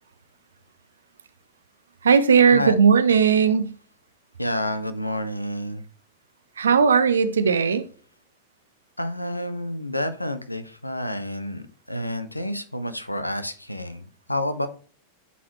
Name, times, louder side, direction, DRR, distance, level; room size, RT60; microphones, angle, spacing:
voice 1, 2.0-3.7 6.6-7.8, right 6 dB, 70° right, 0.6 m, -17 dB
voice 2, 4.4-5.9 9.0-14.7, left 1 dB, 85° left, 0.6 m, -29 dB
9.1 x 4.1 x 3.0 m
figure-of-eight pair, 90°, 0 cm